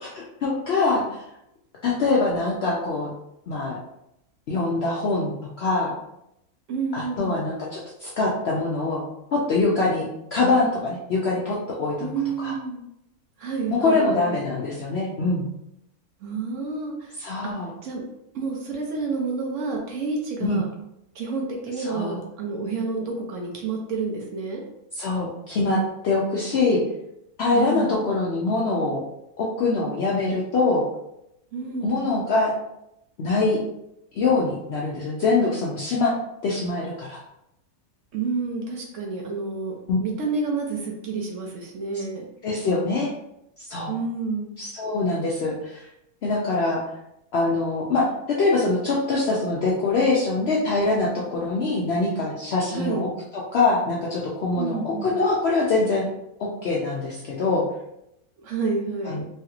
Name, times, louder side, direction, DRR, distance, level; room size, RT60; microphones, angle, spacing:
voice 1, 0.0-1.2 1.8-3.1 3.5-3.8 4.5-5.9 6.9-9.0 9.3-12.1 12.4-12.6 13.7-15.5 17.2-17.7 20.4-20.6 21.8-22.2 24.9-25.8 26.0-26.8 27.4-29.0 29.4-30.8 31.8-32.5 33.2-33.6 34.1-36.1 36.4-37.2 39.9-40.0 42.4-43.1 43.7-43.9 44.6-45.9 46.2-46.8 47.3-48.1 48.4-56.1 56.4-57.6 59.0-59.2, left 3 dB, 65° left, -4 dB, 0.6 m, -24 dB
voice 2, 6.7-7.4 12.0-12.8 13.4-14.3 16.2-17.1 17.4-17.5 17.8-18.0 18.3-20.7 21.1-24.6 27.5-28.0 31.5-32.0 38.1-42.3 43.9-44.5 52.7-53.1 54.6-55.2 58.4-59.2, right 4 dB, 65° right, 0 dB, 0.8 m, -29 dB
3.2 x 2.8 x 2.4 m, 0.82 s
omnidirectional pair, 1.6 m